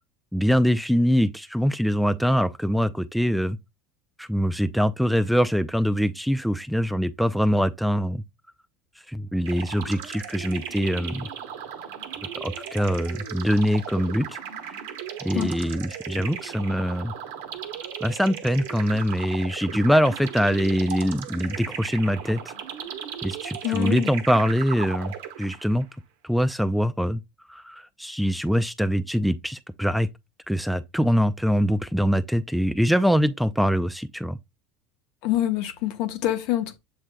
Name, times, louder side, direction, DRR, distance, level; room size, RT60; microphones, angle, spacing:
voice 1, 0.3-3.6 4.2-8.2 9.1-11.3 12.3-14.4 15.2-17.1 18.0-22.5 23.2-25.9 26.2-27.2 27.5-30.1 30.5-34.4, equal, ahead, 0.4 m, -23 dB
sound 1, 9.4-25.8, right 8 dB, 80° right, 0.9 m, -37 dB
voice 2, 23.6-24.1 35.2-36.8, left 13 dB, 65° left, 0.8 m, -26 dB
7.3 x 3.3 x 2.2 m
hypercardioid pair, 90°, 0 cm